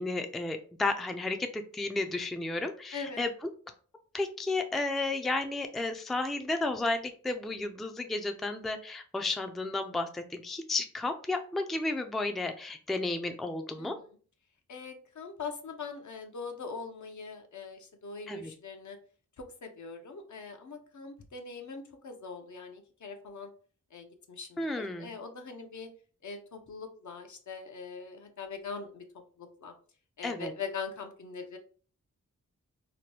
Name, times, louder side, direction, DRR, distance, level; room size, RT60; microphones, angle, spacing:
voice 1, 0.0-3.3 4.1-14.0 18.3-18.5 24.6-25.1 30.2-30.5, left 2 dB, ahead, 6 dB, 0.3 m, -32 dB
voice 2, 2.9-3.2 13.8-14.1 14.7-19.0 19.4-23.5 23.9-25.9 26.2-29.0 29.4-29.7 30.2-31.6, left 5 dB, 65° left, 4 dB, 0.7 m, -42 dB
2.9 x 2.1 x 3.2 m, 0.41 s
cardioid pair, 55°, 32 cm